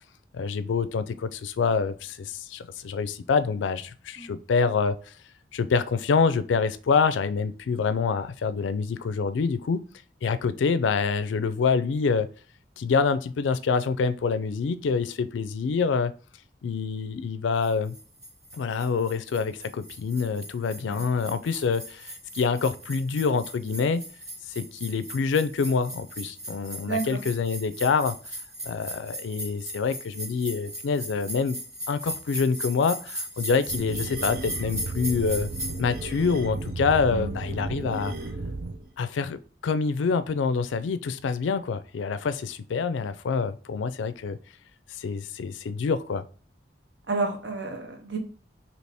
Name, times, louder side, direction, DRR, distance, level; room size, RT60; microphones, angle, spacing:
voice 1, 0.3-5.1 5.5-9.8 10.2-12.3 12.8-16.1 16.6-18.0 18.5-24.0 24.6-28.2 28.6-31.6 31.9-35.5 35.8-38.1 39.0-44.4 45.0-46.2, left 5 dB, 85° left, 13 dB, 0.4 m, -26 dB
sound 1, 17.6-35.8, right 1 dB, 15° right, 1.1 m, -38 dB
voice 2, 26.8-27.2 37.1-37.3 47.1-48.2, right 3 dB, 75° right, 3 dB, 1.0 m, -30 dB
sound 2, 33.7-38.9, right 3 dB, 55° right, 0.4 m, -34 dB
4.1 x 2.9 x 3.3 m, 0.40 s
head